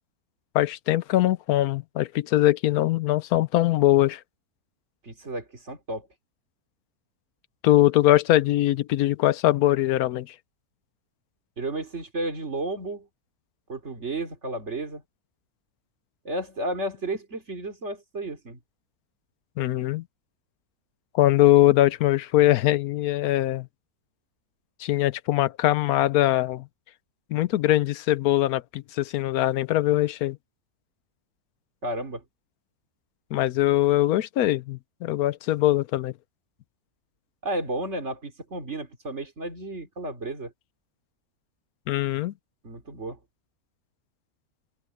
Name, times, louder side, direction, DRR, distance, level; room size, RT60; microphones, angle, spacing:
voice 1, 0.5-4.2 7.6-10.3 19.6-20.0 21.1-23.7 24.8-26.7 27.3-30.4 33.3-36.1 41.9-42.3, left 14 dB, 85° left, 1.1 m, -22 dB
voice 2, 5.0-6.1 11.6-13.1 13.7-15.0 16.2-18.6 31.8-32.2 37.4-40.5 42.6-43.2, right 2 dB, 50° right, 3.5 m, -32 dB
omnidirectional pair, 1.5 m